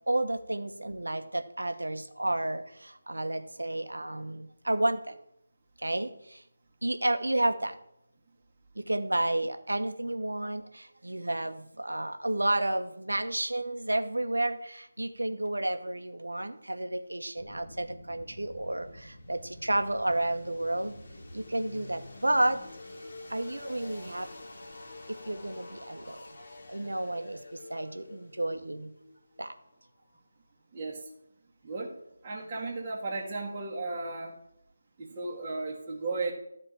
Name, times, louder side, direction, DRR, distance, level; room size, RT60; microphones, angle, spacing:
voice 1, 0.1-5.2 5.8-6.4 6.8-7.7 8.8-20.9 21.3-22.6 23.3-24.3 25.1-26.2 26.7-28.9 29.4-29.5, right 1 dB, 75° right, 8 dB, 1.1 m, -31 dB
sound 1, 17.4-30.2, left 2 dB, 45° left, 1.8 m, -48 dB
voice 2, 30.7-31.1 31.6-32.0 32.2-34.4 35.0-36.3, right 3 dB, 20° right, -6 dB, 1.4 m, -35 dB
12.5 x 4.4 x 7.2 m, 0.77 s
figure-of-eight pair, 160°, 0 cm